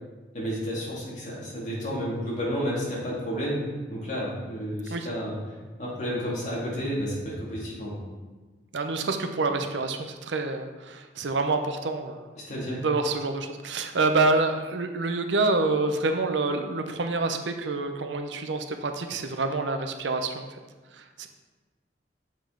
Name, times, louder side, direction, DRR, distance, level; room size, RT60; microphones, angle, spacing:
voice 1, 0.3-3.6 3.9-5.4 5.8-8.0 12.5-12.8, equal, 40° left, -6 dB, 2.4 m, -31 dB
voice 2, 8.7-12.3 12.8-20.5 20.9-21.3, right 3 dB, 85° right, 6 dB, 0.6 m, -27 dB
7.3 x 5.2 x 3.8 m, 1.3 s
head